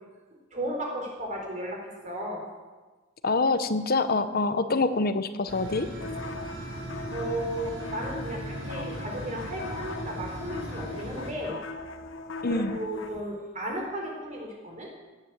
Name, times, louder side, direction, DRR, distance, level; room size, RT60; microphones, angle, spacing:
voice 1, 0.5-2.4 7.1-11.6 12.5-14.9, right 1 dB, 40° right, -1 dB, 4.2 m, -34 dB
voice 2, 3.2-5.9 12.4-12.8, left 3 dB, 50° left, 11 dB, 0.9 m, -25 dB
sound 1, 5.5-11.3, right 1 dB, 85° right, 4.2 m, -38 dB
sound 2, 6.0-13.2, left 3 dB, 70° left, 1.1 m, -39 dB
17.0 x 10.5 x 7.8 m, 1.3 s
head